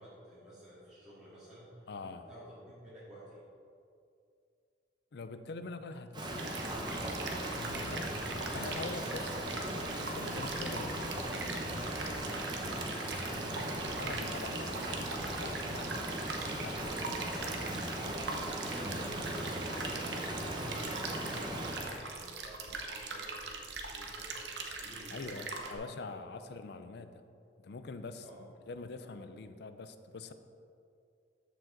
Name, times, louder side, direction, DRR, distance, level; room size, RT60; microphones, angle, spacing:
voice 1, 0.0-2.5 2.8-3.4 7.6-8.6 8.9-9.3 10.5-11.2 11.6-12.8 14.5-14.6 16.3-17.6 18.7-21.5 22.0-25.6 26.1-26.2 28.2-28.4, equal, 5° right, -12 dB, 2.1 m, -52 dB
voice 2, 1.9-2.3 5.1-6.6 7.0-8.0 8.5-9.3 10.0-11.0 14.0-16.8 17.1-17.8 19.1-19.2 25.1-27.2 27.6-30.3, left 3 dB, 65° left, 10 dB, 0.5 m, -45 dB
Rain, 6.1-22.0, right 1 dB, 25° right, 1.0 m, -38 dB
sound 1, 6.4-25.7, right 3 dB, 70° right, 0.9 m, -42 dB
13.5 x 5.1 x 3.9 m, 2.4 s
head